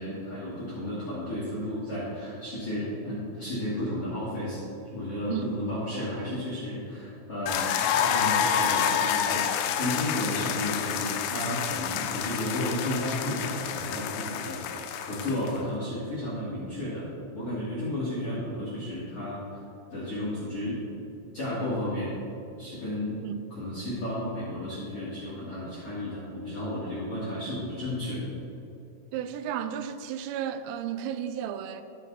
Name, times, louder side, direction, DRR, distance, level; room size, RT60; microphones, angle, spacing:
voice 1, 0.0-4.6 4.9-9.5 9.8-17.1 17.3-19.6 19.9-20.8 21.3-22.1 22.6-23.2 23.5-28.3, left 1 dB, 65° left, 1.4 m, -33 dB
sound 1, 7.5-15.6, left 8 dB, 80° left, 2.8 m, -28 dB
voice 2, 29.1-31.8, right 9 dB, 85° right, 3.2 m, -33 dB
13.0 x 6.7 x 3.9 m
omnidirectional pair, 5.8 m